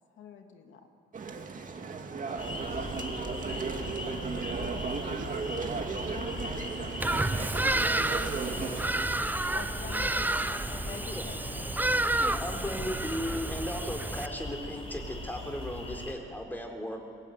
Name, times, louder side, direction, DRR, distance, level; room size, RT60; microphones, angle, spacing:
voice 1, 0.2-0.8 5.7-5.9 9.5-11.7, left 7 dB, 75° left, 2.5 m, -46 dB
sound 1, 1.1-8.8, right 4 dB, 40° right, 2.3 m, -35 dB
voice 2, 2.2-5.8 7.1-10.7, right 4 dB, 70° right, 4.4 m, -48 dB
sound 2, 2.4-16.1, left 2 dB, 30° left, 5.0 m, -40 dB
Bird vocalization bird call bird song, 7.0-14.3, right 2 dB, 10° right, 0.7 m, -30 dB
voice 3, 12.2-17.0, equal, 10° left, 3.9 m, -36 dB
22.0 x 19.0 x 9.3 m
cardioid pair, 90°, 20 cm